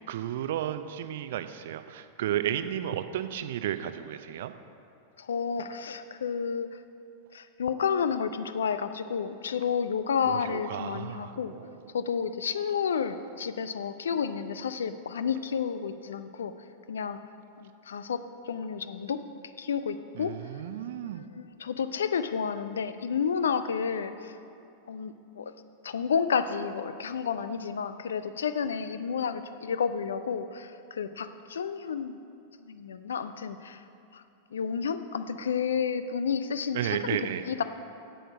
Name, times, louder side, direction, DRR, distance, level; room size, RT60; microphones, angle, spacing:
voice 1, 0.0-4.5 10.3-11.6 20.2-21.2 36.7-37.4, right 11 dB, 55° right, 11 dB, 0.5 m, -33 dB
voice 2, 5.2-6.8 7.3-11.5 11.9-16.5 16.9-17.2 17.6-19.2 19.6-20.3 21.2-24.4 24.9-25.5 25.8-32.2 32.7-33.8 34.1-34.2 34.5-37.2 37.5-37.6, left 6 dB, 65° left, 11 dB, 0.5 m, -31 dB
8.5 x 7.8 x 6.2 m, 2.6 s
figure-of-eight pair, 90°, 0 cm